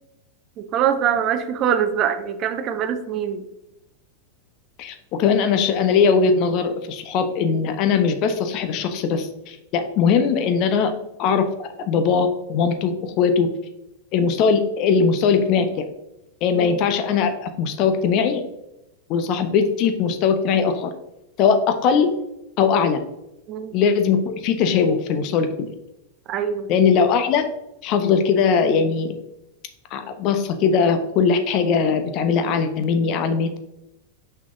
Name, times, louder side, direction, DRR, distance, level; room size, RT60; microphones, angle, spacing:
voice 1, 0.6-3.5 16.5-16.8 23.5-23.8 26.3-26.7, right 8 dB, 35° right, 10 dB, 0.6 m, -23 dB
voice 2, 4.8-10.9 11.2-13.5 14.1-15.8 16.4-18.4 19.1-20.9 21.4-22.1 22.6-23.0 23.7-25.7 26.7-27.4 27.8-29.1 29.9-33.6, left 6 dB, 40° left, 7 dB, 0.8 m, -20 dB
6.0 x 5.8 x 3.0 m, 0.88 s
figure-of-eight pair, 90°, 0 cm